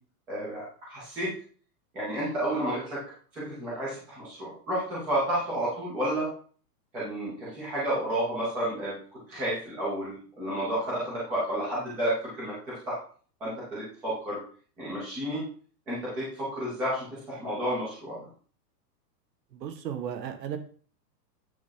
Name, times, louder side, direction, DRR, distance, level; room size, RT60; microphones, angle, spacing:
voice 1, 0.3-1.3 1.9-3.0 3.3-6.3 6.9-13.0 13.4-14.4 14.8-15.4 15.9-18.2, right 1 dB, 5° right, -8 dB, 0.4 m, -31 dB
voice 2, 19.5-20.6, right 9 dB, 80° right, 6 dB, 1.6 m, -35 dB
8.8 x 3.4 x 5.6 m, 0.43 s
hypercardioid pair, 160°, 50 cm